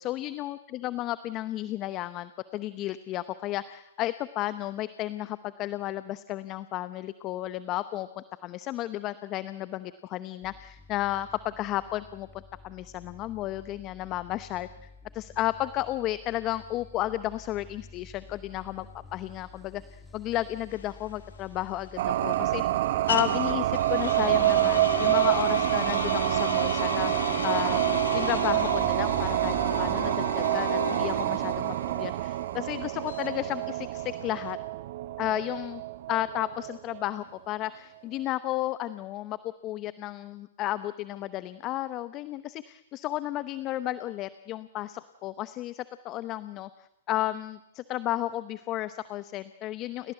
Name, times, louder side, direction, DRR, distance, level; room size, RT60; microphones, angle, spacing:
voice 1, 0.0-14.9 15.1-18.9 19.1-22.6 23.1-27.1 27.4-34.6 35.2-35.8 36.1-46.7 47.1-50.1, left 14 dB, 30° left, 14 dB, 0.8 m, -33 dB
sound 1, 10.4-30.1, left 3 dB, 5° left, 2.8 m, -50 dB
sound 2, 20.7-34.5, left 6 dB, 85° left, 2.7 m, -36 dB
sound 3, 22.0-37.0, right 14 dB, 55° right, 1.0 m, -27 dB
29.5 x 18.0 x 7.9 m, 0.94 s
hypercardioid pair, 130°, 0 cm